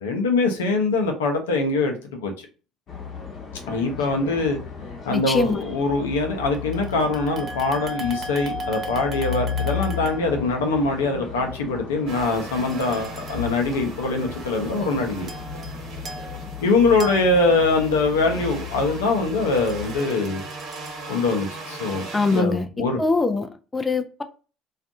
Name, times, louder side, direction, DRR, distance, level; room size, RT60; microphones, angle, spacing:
voice 1, 0.0-2.3 3.7-4.6 5.0-15.3 16.6-20.4 21.1-23.0, left 3 dB, 85° left, 0.6 m, -23 dB
sound 1, 2.9-20.0, left 7 dB, 50° left, 0.9 m, -35 dB
sound 2, 4.2-4.4 6.5-10.5 12.7-13.6 15.2-15.8 16.0-18.0 19.6-21.3, right 1 dB, 40° right, 0.6 m, -37 dB
voice 2, 5.1-5.6 22.1-22.7 23.0-24.2, left 3 dB, 25° left, 0.4 m, -23 dB
sound 3, 12.1-22.4, right 2 dB, 70° right, 1.2 m, -38 dB
2.5 x 2.3 x 2.5 m
hypercardioid pair, 60°, 0 cm